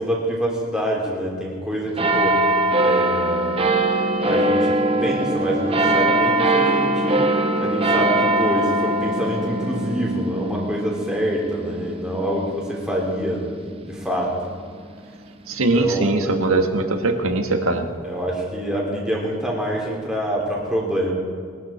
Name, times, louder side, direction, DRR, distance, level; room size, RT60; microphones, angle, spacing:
voice 1, 0.0-2.4 2.8-3.6 4.2-7.3 7.6-13.5 13.9-14.3 15.7-16.5 18.0-21.1, right 1 dB, 5° right, -3 dB, 3.1 m, -26 dB
sound 1, 2.0-14.9 15.5-15.6, right 1 dB, 25° right, 0.8 m, -22 dB
voice 2, 15.5-17.8, right 2 dB, 75° right, 5 dB, 1.6 m, -21 dB
22.5 x 12.5 x 4.3 m, 2.1 s
head